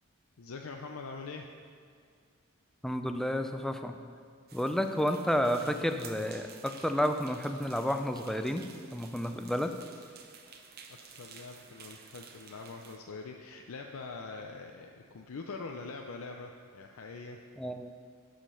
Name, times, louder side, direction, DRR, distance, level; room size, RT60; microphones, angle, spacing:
voice 1, 0.4-1.5 10.9-17.4, left 4 dB, 85° left, 3 dB, 0.5 m, -43 dB
voice 2, 2.8-3.9 4.5-8.6 8.9-9.7 17.6-17.9, equal, ahead, 6 dB, 0.4 m, -31 dB
sound 1, 4.5-13.0, right 6 dB, 45° right, 0.8 m, -52 dB
11.5 x 5.1 x 5.5 m, 2.1 s
head